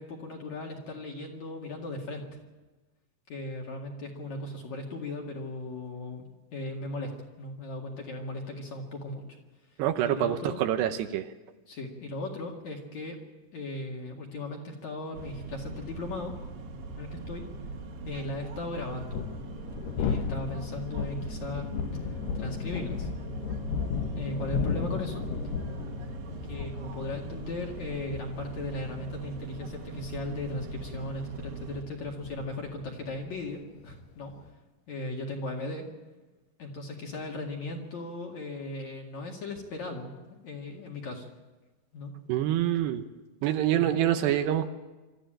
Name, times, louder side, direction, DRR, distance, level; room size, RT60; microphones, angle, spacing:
voice 1, 0.0-2.4 3.3-6.3 6.5-7.1 7.4-9.2 10.0-10.6 11.7-13.2 13.5-16.3 17.0-17.4 18.0-19.2 20.0-21.7 22.3-23.1 24.2-25.2 26.4-34.3 34.9-35.8 36.6-41.3 41.9-42.1 43.7-43.9, left 2 dB, 50° left, 0 dB, 2.8 m, -37 dB
voice 2, 9.8-11.3 42.3-43.0 43.4-44.7, right 11 dB, 80° right, 9 dB, 2.8 m, -26 dB
sound 1, 15.1-31.8, right 3 dB, 60° right, 3.2 m, -40 dB
sound 2, 16.7-16.8 18.9-34.5, left 6 dB, 75° left, 3.0 m, -35 dB
24.0 x 13.5 x 8.9 m, 1.2 s
omnidirectional pair, 5.1 m